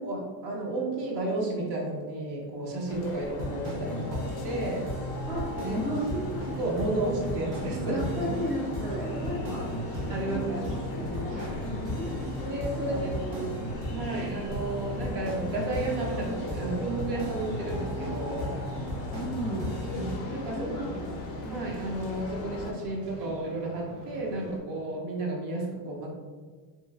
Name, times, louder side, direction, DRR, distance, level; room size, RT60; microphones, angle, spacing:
voice 1, 0.0-4.9 5.5-5.8 6.6-8.4 9.1-9.2 10.1-10.7 12.4-13.1 13.9-18.6 19.9-20.9 21.4-26.1, right 2 dB, 45° right, -1 dB, 0.6 m, -32 dB
sound 1, 2.9-22.7, left 3 dB, 60° left, 0.5 m, -39 dB
sound 2, 3.3-20.2, equal, 60° right, 1.2 m, -36 dB
voice 2, 5.3-6.9 7.8-12.1 12.7-13.4 13.7-13.9 19.1-19.8 20.5-21.2, equal, ahead, -10 dB, 0.3 m, -35 dB
sound 3, 5.8-24.6, right 1 dB, 85° right, 0.8 m, -46 dB
3.0 x 2.3 x 2.3 m, 1.4 s
supercardioid pair, 135°, 49 cm